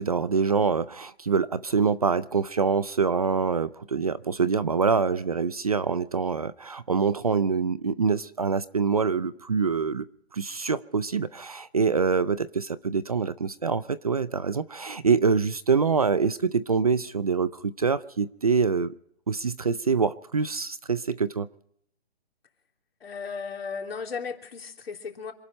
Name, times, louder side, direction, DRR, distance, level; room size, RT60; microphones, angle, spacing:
voice 1, 0.0-10.1 10.3-18.9 19.3-21.5, right 5 dB, 35° right, 16 dB, 0.5 m, -25 dB
voice 2, 23.0-25.3, left 5 dB, 65° left, 3 dB, 3.4 m, -35 dB
27.5 x 12.0 x 4.2 m, 0.69 s
hypercardioid pair, 175°, 32 cm